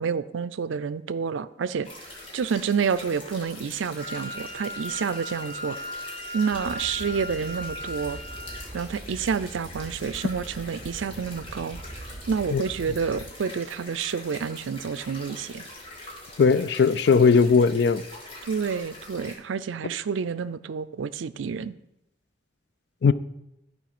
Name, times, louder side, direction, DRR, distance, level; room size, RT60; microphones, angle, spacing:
voice 1, 0.0-1.9 2.3-5.8 6.3-8.2 8.7-11.8 12.3-15.6 18.4-21.7, right 6 dB, 85° right, 0.4 m, -29 dB
sound 1, 1.8-19.4, left 1 dB, 30° left, 2.1 m, -44 dB
Wind instrument woodwind instrument, 3.9-8.8, left 1 dB, 45° right, 1.7 m, -37 dB
sound 2, 6.5-13.3, right 2 dB, 25° right, 0.6 m, -43 dB
voice 2, 16.4-18.0 23.0-23.1, left 5 dB, 60° left, 0.4 m, -18 dB
11.0 x 4.7 x 6.0 m
head